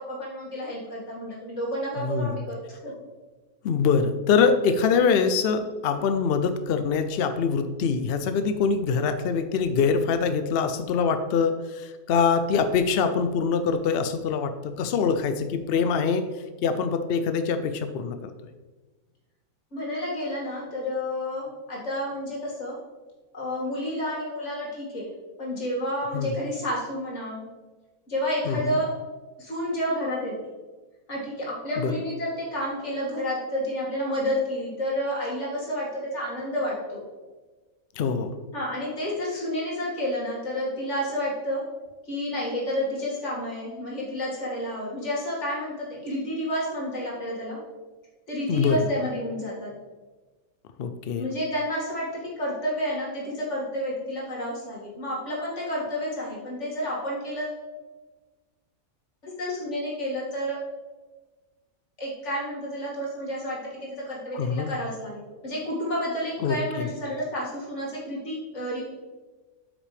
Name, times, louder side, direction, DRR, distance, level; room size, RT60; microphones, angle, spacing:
voice 1, 0.1-2.9 19.7-22.8 23.3-25.1 25.4-27.4 28.1-28.9 29.4-30.4 31.1-37.0 38.5-41.6 42.0-47.6 48.3-49.7 51.2-57.6 59.2-60.6 62.0-68.8, equal, 50° left, -5 dB, 2.6 m, -30 dB
voice 2, 2.0-2.3 3.6-16.3 16.6-18.3 26.1-26.3 28.5-28.8 31.8-31.9 38.0-38.4 48.5-48.8 50.8-51.3 64.3-64.7 66.4-66.9, left 5 dB, 70° left, 9 dB, 0.5 m, -24 dB
8.3 x 6.0 x 3.4 m, 1.3 s
omnidirectional pair, 1.6 m